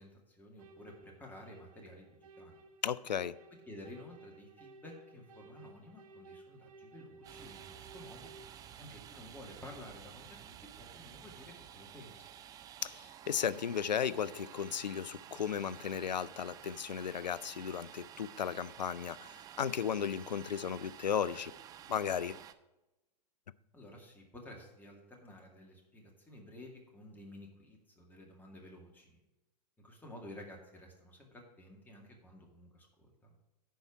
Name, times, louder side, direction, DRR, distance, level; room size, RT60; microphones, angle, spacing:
voice 1, 0.0-2.6 3.7-8.3 8.8-12.2 23.7-29.2 29.8-33.4, left 1 dB, 10° left, 2.1 m, -52 dB
sound 1, 0.6-8.5, right 4 dB, 55° right, 1.0 m, -56 dB
voice 2, 2.8-3.4 12.8-21.5 21.9-22.4, left 8 dB, 85° left, 0.5 m, -35 dB
Domestic sounds home sounds, 7.2-22.5, right 10 dB, 15° right, 0.4 m, -52 dB
10.5 x 4.6 x 7.3 m
hypercardioid pair, 110°, 21 cm